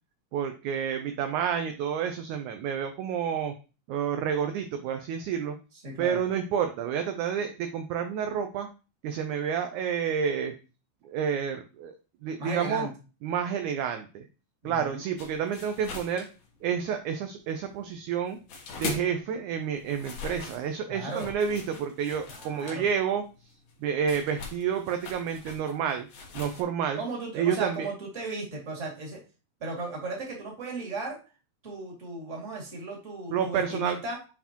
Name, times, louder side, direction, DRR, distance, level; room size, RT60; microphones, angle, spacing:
voice 1, 0.3-3.5 3.9-5.6 6.0-8.7 9.0-10.5 11.1-12.0 12.2-12.9 13.2-14.3 14.6-16.3 16.6-18.4 18.8-23.2 23.8-26.1 26.4-27.0 27.3-27.9 33.3-34.0, right 7 dB, 75° right, 7 dB, 1.8 m, -29 dB
voice 2, 5.8-6.2 12.4-12.9 14.6-15.0 20.9-21.3 22.3-22.9 27.0-29.2 29.6-31.2 31.6-34.2, right 3 dB, 25° right, -1 dB, 2.2 m, -36 dB
sound 1, 15.2-17.0 17.2-19.3 19.6-26.6, left 4 dB, 65° left, 2.7 m, -41 dB
9.0 x 4.4 x 2.9 m, 0.33 s
omnidirectional pair, 4.0 m